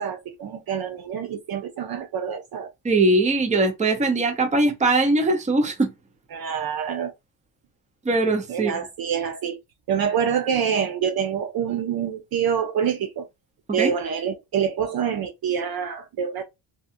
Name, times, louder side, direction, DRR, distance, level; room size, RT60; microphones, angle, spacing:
voice 1, 0.0-2.7 6.3-7.1 8.5-9.6 9.9-13.2 13.7-16.4, right 8 dB, 50° right, 0.6 m, -26 dB
voice 2, 2.8-5.9 8.0-8.7 13.8-13.9, right 2 dB, 15° right, 0.6 m, -21 dB
2.8 x 2.3 x 2.4 m
cardioid pair, 115°, 48 cm